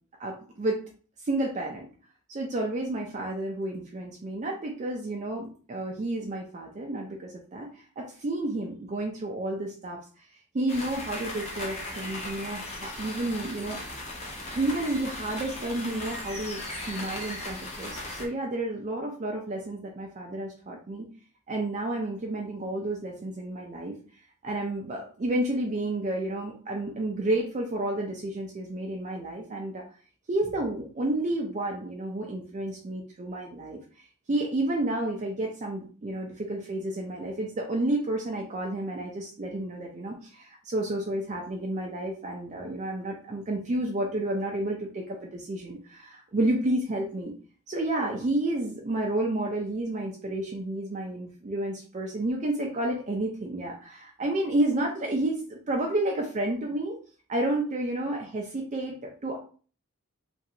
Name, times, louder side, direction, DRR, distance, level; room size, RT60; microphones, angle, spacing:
voice 1, 0.2-0.8 1.2-1.9 2.3-10.2 10.5-14.1 14.6-21.1 21.5-24.0 24.4-29.8 30.3-47.3 47.7-57.0 57.3-59.4, right 1 dB, 35° right, 0 dB, 0.4 m, -31 dB
sound 1, 10.7-18.3, left 1 dB, 30° left, 0.7 m, -37 dB
3.0 x 2.5 x 2.7 m, 0.41 s
head